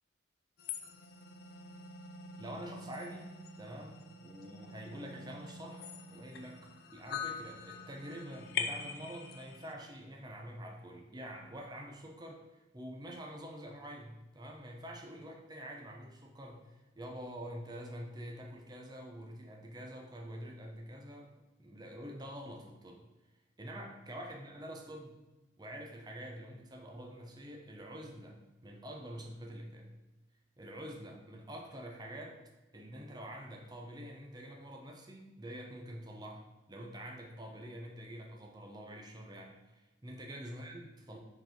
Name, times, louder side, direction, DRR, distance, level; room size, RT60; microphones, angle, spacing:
sound 1, 0.6-9.7, left 6 dB, 55° left, 0.5 m, -44 dB
voice 1, 2.4-21.3 21.6-23.0 23.6-25.2 25.6-29.9 30.6-32.4 32.7-41.2, equal, 20° right, 1 dB, 0.7 m, -46 dB
5.2 x 4.1 x 5.2 m, 1.1 s
head